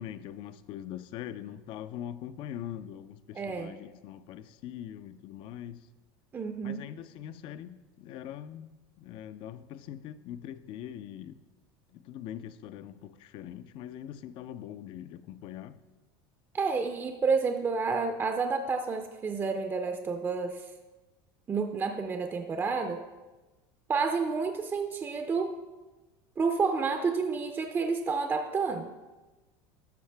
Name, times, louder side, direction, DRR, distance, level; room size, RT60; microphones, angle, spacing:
voice 1, 0.0-5.9 6.6-8.7 9.0-11.4 11.9-15.8, left 10 dB, 50° left, 0.4 m, -42 dB
voice 2, 3.3-3.7 6.3-6.8 16.5-20.6 21.5-23.0 23.9-25.6 26.4-28.9, right 4 dB, 20° right, 0.5 m, -30 dB
13.0 x 5.7 x 3.4 m
supercardioid pair, 135°, 11 cm